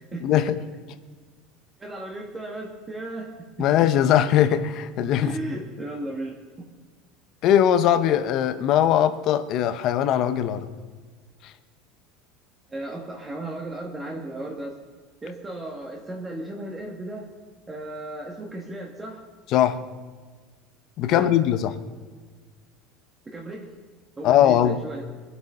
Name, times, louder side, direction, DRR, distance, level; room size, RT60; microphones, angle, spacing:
voice 1, 0.2-0.6 3.6-5.3 7.4-10.7 19.5-19.8 21.0-21.7 24.2-24.8, left 10 dB, 45° left, 12 dB, 0.8 m, -20 dB
voice 2, 1.8-3.3 5.2-6.7 12.7-14.8 15.2-17.3 17.7-19.2 21.1-21.4 23.3-23.7 24.2-25.0, right 1 dB, 15° right, 0 dB, 1.3 m, -35 dB
22.5 x 7.9 x 5.5 m, 1.4 s
cardioid pair, 160°, 0 cm